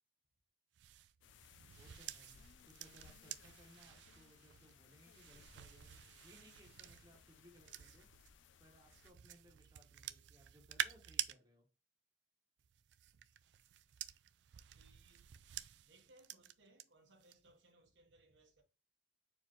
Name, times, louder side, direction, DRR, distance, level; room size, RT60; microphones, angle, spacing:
sound 1, 0.7-8.3 8.9-11.3 12.6-16.8 17.2-17.6, right 11 dB, 70° right, 0.3 m, -49 dB
sound 2, 1.2-9.1, left 6 dB, 85° left, 0.4 m, -64 dB
voice 1, 1.8-5.9 6.2-8.1 8.6-11.7, equal, 20° right, 1.1 m, -65 dB
voice 2, 14.7-15.3 15.8-18.6, right 2 dB, 85° right, 1.1 m, -67 dB
4.5 x 3.5 x 3.0 m
head